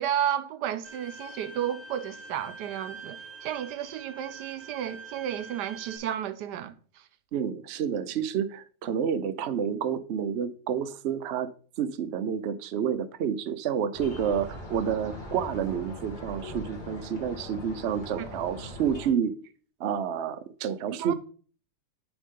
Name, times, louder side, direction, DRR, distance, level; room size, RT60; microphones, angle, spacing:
voice 1, 0.0-7.1 18.2-18.3 20.9-21.1, right 10 dB, 80° right, 1.2 m, -32 dB
Bowed string instrument, 0.8-6.0, right 3 dB, 10° left, 1.2 m, -45 dB
voice 2, 7.3-11.5 11.8-19.3 19.8-21.1, right 8 dB, 60° right, 0.7 m, -29 dB
sound 1, 13.9-19.1, left 1 dB, 30° left, 2.0 m, -41 dB
10.0 x 4.0 x 3.7 m
omnidirectional pair, 1.8 m